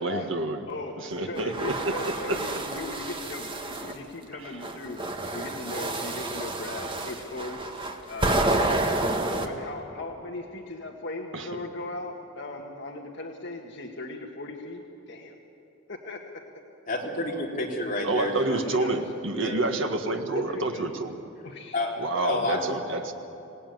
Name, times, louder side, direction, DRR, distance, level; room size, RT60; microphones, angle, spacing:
voice 1, 0.0-0.6 1.0-2.4 11.3-11.5 18.0-21.2 22.0-23.1, right 2 dB, 65° right, 4 dB, 1.9 m, -28 dB
voice 2, 0.7-7.6 8.1-8.8 9.4-15.4 15.9-16.2 18.5-19.0 19.3-19.6 20.3-20.9 21.4-21.8, left 2 dB, 60° left, 1 dB, 1.7 m, -38 dB
sound 1, 1.4-4.0 4.6-9.5, right 2 dB, 25° right, 1.6 m, -29 dB
voice 3, 16.9-18.6 21.7-21.9 22.2-22.6, left 2 dB, 40° left, -2 dB, 3.8 m, -29 dB
25.5 x 18.0 x 9.5 m, 2.8 s
head